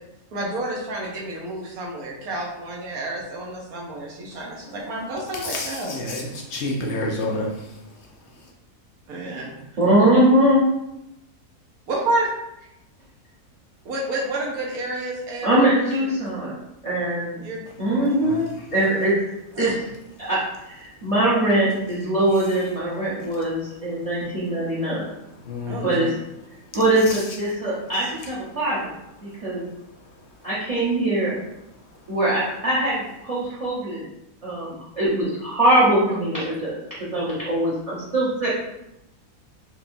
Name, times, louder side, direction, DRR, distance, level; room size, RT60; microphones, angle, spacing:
voice 1, 0.3-5.9 9.1-9.5 11.9-12.3 13.8-16.1 17.4-17.6 17.9-18.4 19.6-19.8 25.7-26.1, right 2 dB, 70° right, -2 dB, 1.3 m, -30 dB
voice 2, 4.3-4.8 5.3-8.5 17.7-17.8 18.2-18.7 20.2-20.3 20.9-21.0 22.3-22.7 23.2-23.4 23.9-24.2 24.5-26.0 26.5-27.4 27.9-28.6 29.2-30.5 31.7-32.1, left 2 dB, 65° left, 0 dB, 0.7 m, -34 dB
voice 3, 9.8-10.6 15.4-17.4 17.8-18.4 18.7-19.3 19.6-19.7 20.2-20.4 20.7-25.0 25.8-26.1 26.7-28.9 29.2-29.7 30.4-31.3 32.1-34.0 34.4-36.8 37.1-38.5, right 1 dB, 25° right, -9 dB, 0.9 m, -22 dB
4.5 x 2.9 x 2.6 m, 0.88 s
omnidirectional pair, 1.7 m